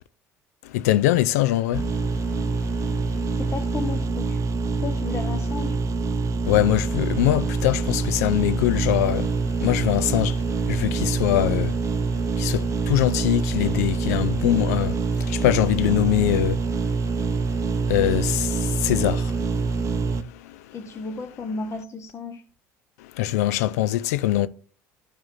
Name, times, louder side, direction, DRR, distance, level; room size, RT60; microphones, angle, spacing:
voice 1, 0.6-3.3 6.5-20.8 23.0-24.5, left 13 dB, 80° left, 0.4 m, -24 dB
sound 1, 1.7-20.2, right 4 dB, 40° right, 0.6 m, -25 dB
voice 2, 3.3-4.4 4.8-5.8 20.7-22.4, left 4 dB, 35° left, 0.9 m, -33 dB
12.5 x 4.8 x 2.6 m
hypercardioid pair, 70°, 8 cm